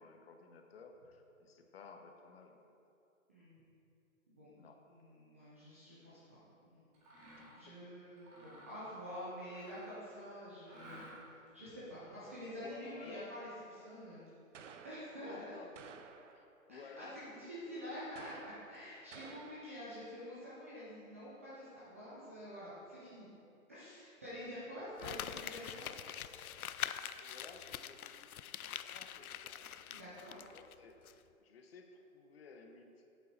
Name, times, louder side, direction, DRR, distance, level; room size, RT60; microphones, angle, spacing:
voice 1, 0.0-2.7 4.5-4.9 7.4-8.0 12.1-12.2 12.6-13.7 15.3-15.8 16.3-18.0 19.0-19.7 26.9-28.4 28.6-33.0, left 4 dB, 45° left, 4 dB, 0.9 m, -56 dB
voice 2, 4.9-6.9 7.5-11.1 11.5-14.3 14.5-15.6 16.7-17.1 17.3-23.3 23.7-25.9 29.6-30.4, equal, 10° right, -10 dB, 0.4 m, -48 dB
Mechanisms, 6.9-7.7 8.2-10.1 10.6-11.5, right 1 dB, 25° right, 2.1 m, -56 dB
sound 1, 14.5-15.4 15.8-16.6 18.2-19.9, right 6 dB, 60° right, 0.7 m, -54 dB
Crumpling crinkling, 25.0-30.7 31.1-31.2, left 10 dB, 80° left, 0.5 m, -44 dB
8.4 x 7.7 x 4.2 m, 2.7 s
hypercardioid pair, 140°, 43 cm